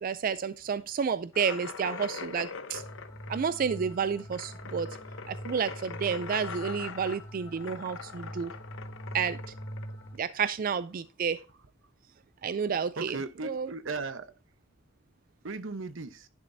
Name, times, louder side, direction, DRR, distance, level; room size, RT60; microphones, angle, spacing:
voice 1, 0.0-2.8 3.3-4.9 5.3-8.5 9.1-9.4 10.2-11.4 12.4-13.2 13.4-13.7, right 6 dB, 45° right, 0.4 m, -30 dB
sound 1, 1.3-10.7, left 5 dB, 85° left, 0.8 m, -42 dB
sound 2, 2.7-10.2, equal, 15° left, 1.7 m, -43 dB
voice 2, 13.0-14.3 15.4-16.3, right 3 dB, 85° right, 0.9 m, -37 dB
11.0 x 7.2 x 2.7 m
head